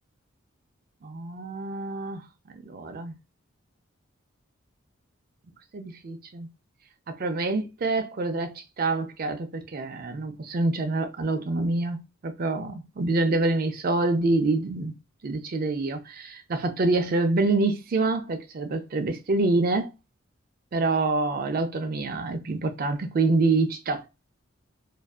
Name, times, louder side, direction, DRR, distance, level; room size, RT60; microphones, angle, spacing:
voice 1, 1.0-2.2 2.5-3.1 5.7-6.5 7.1-14.9 15.2-19.9 20.7-24.0, right 3 dB, 45° right, 0.4 m, -26 dB
2.6 x 2.3 x 2.3 m
head